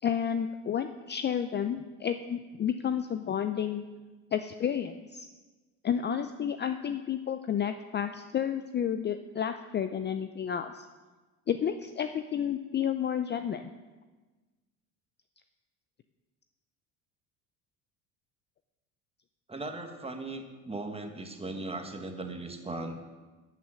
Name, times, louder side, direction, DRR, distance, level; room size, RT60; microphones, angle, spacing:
voice 1, 0.0-3.8 4.3-5.3 5.8-10.8 11.5-13.6, left 8 dB, 30° left, 9 dB, 0.5 m, -31 dB
voice 2, 19.5-23.1, right 2 dB, 15° right, 5 dB, 1.6 m, -38 dB
12.0 x 5.7 x 7.6 m, 1.3 s
supercardioid pair, 85°, 37 cm